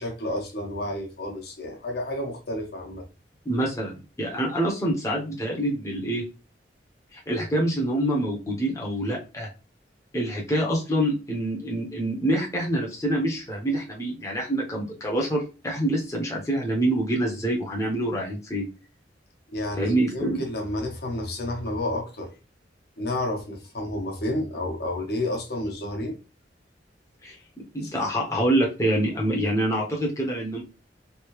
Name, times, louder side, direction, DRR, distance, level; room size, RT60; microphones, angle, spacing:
voice 1, 0.0-3.0 19.5-22.3 23.0-26.1 27.8-27.9, left 1 dB, 60° left, 1 dB, 1.1 m, -30 dB
voice 2, 3.5-6.2 7.1-9.5 10.1-18.7 19.8-20.4 27.2-27.4 27.7-30.6, right 1 dB, 15° left, -2 dB, 0.8 m, -26 dB
3.3 x 2.7 x 3.1 m, 0.31 s
head